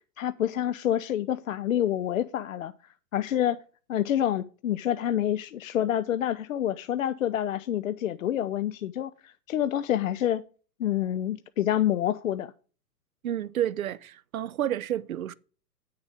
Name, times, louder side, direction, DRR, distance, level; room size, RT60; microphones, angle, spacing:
voice 1, 0.2-2.7 3.1-3.6 3.9-10.4 10.8-12.5, left 11 dB, 55° left, 0.6 m, -27 dB
voice 2, 13.2-15.3, right 11 dB, 60° right, 0.6 m, -30 dB
9.0 x 6.7 x 4.9 m
figure-of-eight pair, 105°, 49 cm